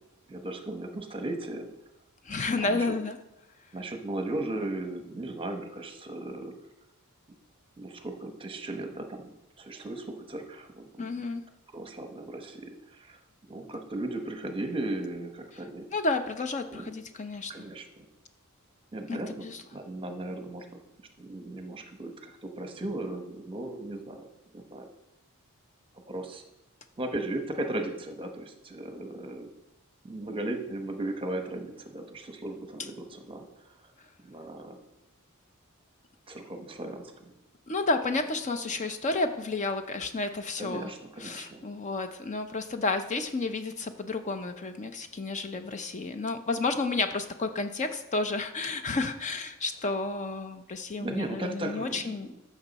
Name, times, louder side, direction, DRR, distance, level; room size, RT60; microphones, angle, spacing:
voice 1, 0.3-1.7 2.6-2.9 3.7-6.5 7.8-11.1 11.7-13.2 13.5-15.9 16.7-16.9 17.5-18.1 18.9-19.4 19.7-20.7 21.2-24.3 24.5-24.9 26.1-26.4 27.0-29.5 30.0-33.4 34.2-34.8 36.3-37.3 40.6-41.7 51.0-52.4, right 2 dB, 25° right, 5 dB, 1.0 m, -36 dB
voice 2, 2.3-3.2 11.0-11.4 15.9-17.5 19.1-19.6 37.7-40.9 41.2-52.3, left 3 dB, 35° left, 8 dB, 0.6 m, -31 dB
14.5 x 6.2 x 4.1 m, 0.94 s
head